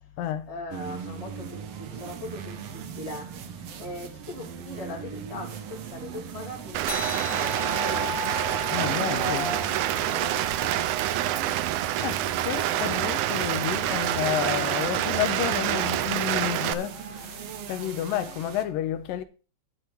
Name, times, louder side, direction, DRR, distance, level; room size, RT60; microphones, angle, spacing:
voice 1, 0.5-8.1 9.1-10.9, left 2 dB, 15° left, 1.6 m, -39 dB
sound 1, 0.7-18.7, right 7 dB, 70° right, 1.5 m, -39 dB
Rain, 6.7-16.7, right 13 dB, 90° right, 1.7 m, -27 dB
sound 2, 6.9-11.8, left 6 dB, 55° left, 1.9 m, -37 dB
voice 2, 8.7-9.5 12.0-17.4 17.7-19.2, left 11 dB, 80° left, 2.3 m, -30 dB
10.5 x 4.5 x 7.9 m
omnidirectional pair, 4.1 m